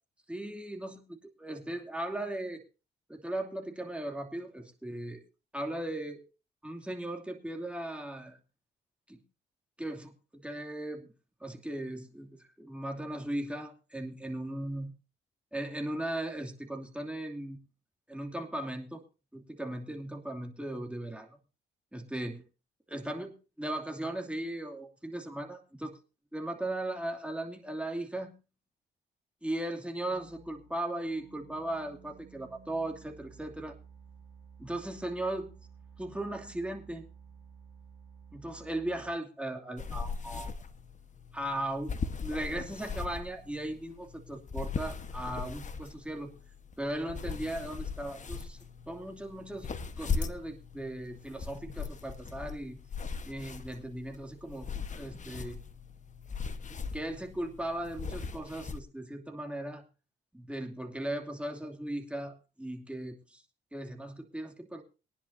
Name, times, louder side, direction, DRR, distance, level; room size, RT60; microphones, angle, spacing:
voice 1, 0.3-2.6 3.1-5.2 5.5-6.2 6.6-8.4 9.1-9.2 9.8-11.1 11.4-14.9 15.5-17.6 18.1-19.0 19.3-21.3 21.9-22.4 22.9-26.0 26.3-28.3 29.4-33.8 34.6-35.5 36.0-37.0 38.3-40.5 41.3-41.9 42.2-46.3 46.8-48.6 48.9-49.7 50.0-52.8 53.2-54.7 55.0-55.6 56.7-59.8 60.3-63.4 63.7-64.8, right 1 dB, 5° right, 2 dB, 2.7 m, -37 dB
sound 1, 30.1-39.1, right 6 dB, 15° left, 5.4 m, -54 dB
sound 2, 39.8-58.8, left 5 dB, 40° left, 1.3 m, -39 dB
22.5 x 10.5 x 2.7 m, 0.32 s
cardioid pair, 90°, 20 cm